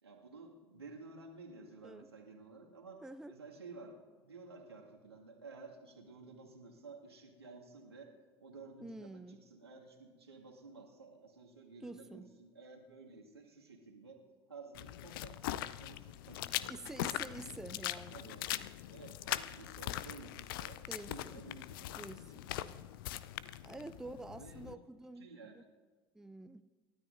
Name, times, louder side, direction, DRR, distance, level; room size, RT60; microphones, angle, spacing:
voice 1, 0.0-3.0 3.3-8.1 8.4-14.2 14.5-17.1 17.7-18.5 18.9-20.8 21.1-22.8 23.7-24.8 25.2-25.6, right 3 dB, 80° right, 0 dB, 2.0 m, -53 dB
voice 2, 3.0-3.3 8.8-9.4 11.8-12.3 16.7-18.2 20.9-21.4 21.9-22.5 23.6-25.6 26.1-26.6, right 2 dB, 5° right, 10 dB, 0.5 m, -48 dB
sound 1, 14.7-24.7, left 14 dB, 60° left, 0.5 m, -41 dB
28.5 x 13.0 x 2.6 m, 1.4 s
figure-of-eight pair, 70°, 13 cm